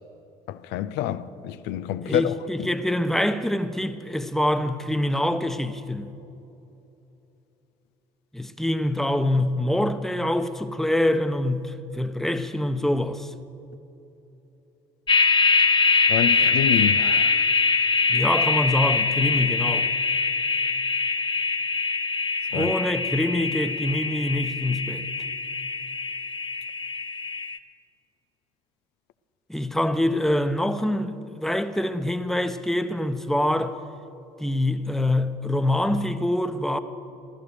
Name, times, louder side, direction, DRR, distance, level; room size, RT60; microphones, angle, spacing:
voice 1, 0.5-2.7 16.1-17.4 22.5-22.7, left 11 dB, 70° left, 0.6 m, -28 dB
voice 2, 2.0-6.1 8.3-13.3 18.1-19.9 22.5-25.1 29.5-33.8 34.4-36.8, left 1 dB, ahead, 1.0 m, -25 dB
sound 1, 15.1-27.6, left 4 dB, 25° left, 1.0 m, -23 dB
14.5 x 13.5 x 6.6 m
hypercardioid pair, 60°, 18 cm